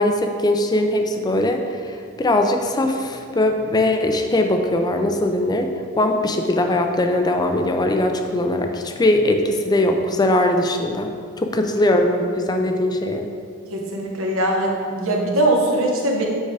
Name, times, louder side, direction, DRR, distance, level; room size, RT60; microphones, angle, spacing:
voice 1, 0.0-5.7 6.0-11.1 11.4-13.3, left 1 dB, 20° left, 4 dB, 0.4 m, -20 dB
voice 2, 13.7-16.2, right 1 dB, 65° right, -1 dB, 1.1 m, -21 dB
8.0 x 4.8 x 3.4 m, 2.2 s
head